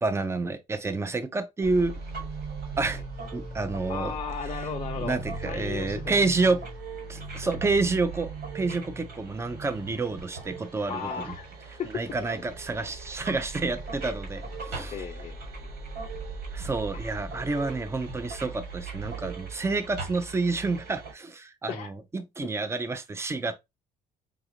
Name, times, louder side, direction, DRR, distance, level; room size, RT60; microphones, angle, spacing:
voice 1, 0.0-1.9 2.8-3.0 3.3-4.1 5.0-6.6 7.1-11.0 11.9-14.9 16.5-23.5, right 3 dB, 15° right, 0.6 m, -29 dB
sound 1, 1.6-21.1, right 3 dB, 75° right, 2.2 m, -38 dB
voice 2, 3.9-6.2 7.4-7.5 10.9-11.5 11.8-12.0 14.9-15.7 21.7-21.9, left 7 dB, 40° left, 0.5 m, -35 dB
5.0 x 2.5 x 2.8 m
cardioid pair, 110°, 17 cm